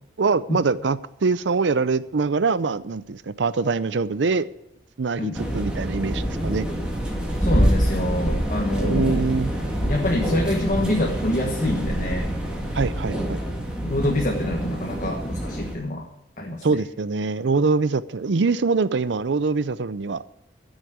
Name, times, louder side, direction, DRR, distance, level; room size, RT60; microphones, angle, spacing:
voice 1, 0.2-4.5 5.0-6.7 8.8-9.5 12.7-13.4 16.6-20.2, right 4 dB, 75° right, 16 dB, 0.6 m, -23 dB
sound 1, 5.3-15.7, equal, 5° right, 2.1 m, -26 dB
voice 2, 7.4-9.3 9.6-12.4 13.8-16.1 16.4-16.8, left 1 dB, 45° left, 1 dB, 1.3 m, -26 dB
13.5 x 6.5 x 8.1 m, 0.84 s
head